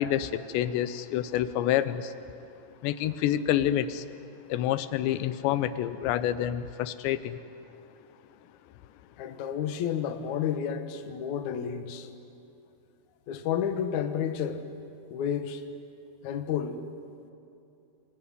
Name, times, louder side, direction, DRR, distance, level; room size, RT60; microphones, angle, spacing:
voice 1, 0.0-2.1 2.8-4.1 4.5-7.4, left 11 dB, 90° left, 3.1 m, -28 dB
voice 2, 9.2-12.1 13.3-14.6 15.1-15.6 16.2-16.8, left 8 dB, 65° left, 2.0 m, -31 dB
27.5 x 21.5 x 9.6 m
omnidirectional pair, 4.9 m